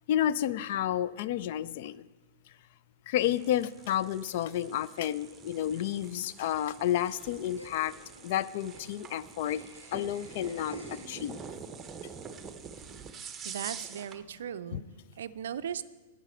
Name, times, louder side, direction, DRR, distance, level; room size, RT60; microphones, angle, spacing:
voice 1, 0.1-2.0 3.1-7.9 8.2-9.6 9.9-11.4 14.7-14.8, left 11 dB, 50° left, 17 dB, 0.3 m, -31 dB
sound 1, 3.2-14.2, right 6 dB, 20° right, 0.7 m, -46 dB
Laughter, 7.6-11.8, left 1 dB, 85° left, 1.2 m, -51 dB
voice 2, 13.4-14.9 15.2-15.8, right 9 dB, 60° right, 13 dB, 0.4 m, -37 dB
11.5 x 9.1 x 4.4 m, 1.3 s
figure-of-eight pair, 105°, 0 cm